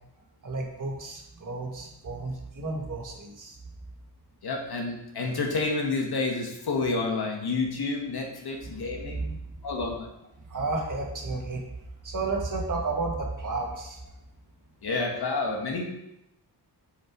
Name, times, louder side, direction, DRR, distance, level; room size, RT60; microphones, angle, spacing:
voice 1, 0.4-3.6 8.6-8.8 9.1-9.4 10.5-11.6 12.0-14.1, right 3 dB, 50° right, 0 dB, 1.6 m, -32 dB
voice 2, 4.4-9.2 9.6-10.1 14.8-15.8, left 3 dB, 70° left, 1 dB, 1.7 m, -29 dB
6.8 x 6.6 x 4.6 m, 0.86 s
wide cardioid pair, 180°, 39 cm